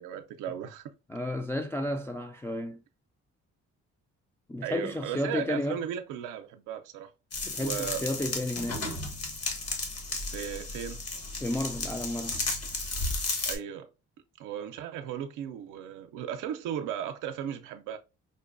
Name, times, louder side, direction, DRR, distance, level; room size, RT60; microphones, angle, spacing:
voice 1, 0.0-0.9 4.6-7.1 7.6-8.0 10.1-11.0 13.5-13.9 14.4-18.0, right 9 dB, 90° right, 0.5 m, -36 dB
voice 2, 1.1-2.8 4.5-5.8 7.4-8.8 11.4-12.4, left 1 dB, 10° left, 0.3 m, -32 dB
sound 1, 7.3-13.6, left 3 dB, 55° left, 1.3 m, -34 dB
5.3 x 2.2 x 2.5 m
cardioid pair, 90°, 30 cm